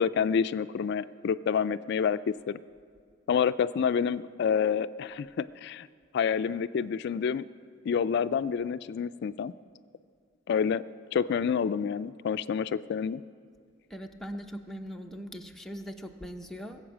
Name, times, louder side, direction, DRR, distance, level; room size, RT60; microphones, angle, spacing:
voice 1, 0.0-2.6 3.3-5.9 6.1-7.4 7.9-9.5 10.5-10.8 11.1-13.2, left 7 dB, 60° left, 14 dB, 0.3 m, -28 dB
voice 2, 13.9-16.8, equal, ahead, 2 dB, 0.7 m, -40 dB
21.0 x 8.0 x 6.1 m, 2.1 s
head